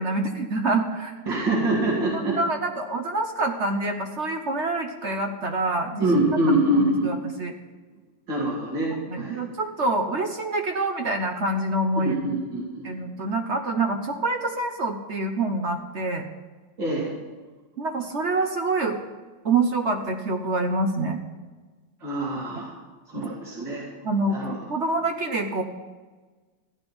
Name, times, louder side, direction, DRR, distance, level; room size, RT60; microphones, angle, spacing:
voice 1, 0.0-1.1 2.1-6.1 6.7-7.5 9.1-12.3 12.8-16.3 17.8-19.0 19.4-21.2 23.2-23.3 24.0-25.6, right 2 dB, 50° right, 4 dB, 0.9 m, -26 dB
voice 2, 1.3-2.4 6.0-7.1 8.3-9.4 12.0-12.9 16.8-17.1 22.0-22.7 23.1-23.9 24.3-24.6, right 1 dB, 75° right, -6 dB, 3.1 m, -25 dB
14.5 x 10.0 x 4.4 m, 1.3 s
omnidirectional pair, 2.0 m